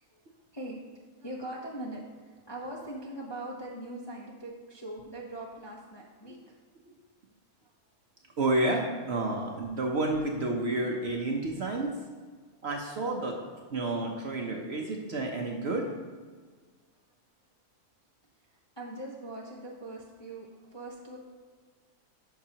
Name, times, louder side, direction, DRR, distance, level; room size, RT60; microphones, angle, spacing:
voice 1, 1.2-6.5 11.3-11.4 18.8-21.2, right 1 dB, 25° left, -3 dB, 0.6 m, -41 dB
voice 2, 8.4-11.9 12.6-13.4 13.7-15.8, right 2 dB, 55° right, 1 dB, 0.9 m, -30 dB
10.5 x 5.9 x 2.9 m, 1.5 s
omnidirectional pair, 1.7 m